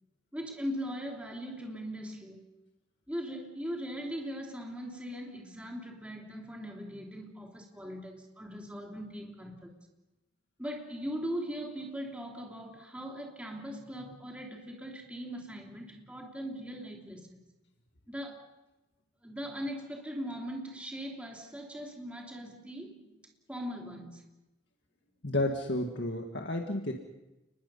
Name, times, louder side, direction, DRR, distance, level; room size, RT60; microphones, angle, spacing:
voice 1, 0.3-2.5 3.1-9.7 10.6-17.4 18.1-18.5 19.2-24.2, equal, 5° right, 0 dB, 3.0 m, -40 dB
voice 2, 25.2-26.9, left 1 dB, 80° left, 2 dB, 1.9 m, -31 dB
30.0 x 21.0 x 5.6 m, 0.97 s
head